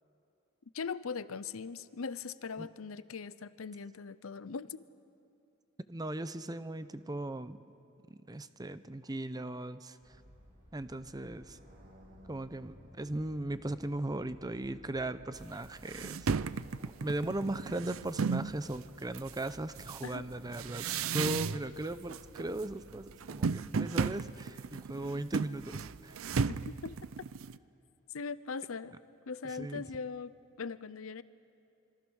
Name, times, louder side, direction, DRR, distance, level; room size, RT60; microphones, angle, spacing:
voice 1, 0.7-4.8 20.0-20.3 26.7-27.0 28.1-29.0 29.3-31.2, left 5 dB, 80° left, 16 dB, 0.7 m, -40 dB
voice 2, 5.9-7.6 8.1-10.0 10.7-11.6 12.3-16.5 16.8-26.2 29.6-29.8, right 1 dB, 20° right, 13 dB, 0.7 m, -38 dB
sound 1, 10.0-22.8, equal, 50° right, 5.3 m, -58 dB
sound 2, 15.4-15.5 15.8-18.5 19.1-21.8 22.1-22.6 22.9-27.6, right 5 dB, 75° right, 0.5 m, -35 dB
26.0 x 24.5 x 6.4 m, 2.7 s
head